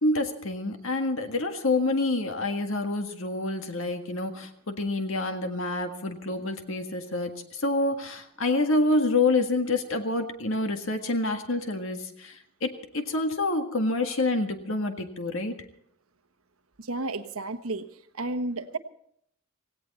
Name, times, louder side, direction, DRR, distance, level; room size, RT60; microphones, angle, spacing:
voice 1, 0.0-15.5, left 2 dB, 65° left, 6 dB, 1.8 m, -27 dB
voice 2, 16.8-17.8 18.1-18.8, right 2 dB, 80° right, 8 dB, 1.3 m, -32 dB
17.5 x 17.0 x 4.2 m, 0.67 s
head